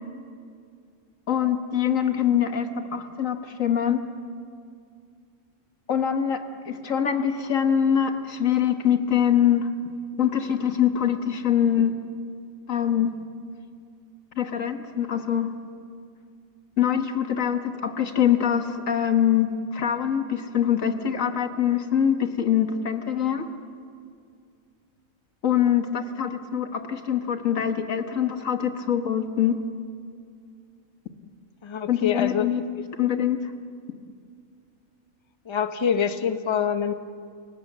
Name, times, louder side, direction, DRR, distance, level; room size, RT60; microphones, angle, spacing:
voice 1, 1.3-4.0 5.9-9.7 10.2-11.9 12.7-13.1 14.4-15.5 16.8-23.4 25.4-29.5 31.9-32.6 33.0-33.4, left 9 dB, 65° left, 7 dB, 1.6 m, -24 dB
voice 2, 31.6-32.5 32.7-32.8 35.5-36.9, left 7 dB, 25° left, 9 dB, 0.7 m, -25 dB
29.5 x 18.0 x 7.4 m, 2.3 s
omnidirectional pair, 1.5 m